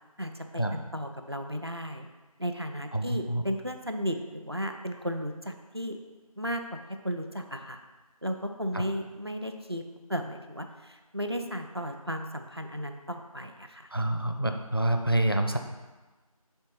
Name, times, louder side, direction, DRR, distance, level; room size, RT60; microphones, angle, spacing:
voice 1, 0.2-2.1 2.4-6.0 6.4-6.6 6.9-7.8 8.2-9.8 10.1-13.9, equal, 45° right, 5 dB, 0.5 m, -34 dB
voice 2, 2.9-3.4 8.7-8.8 13.9-15.6, right 1 dB, 40° left, 6 dB, 0.4 m, -27 dB
5.3 x 4.4 x 5.4 m, 1.2 s
figure-of-eight pair, 180°, 19 cm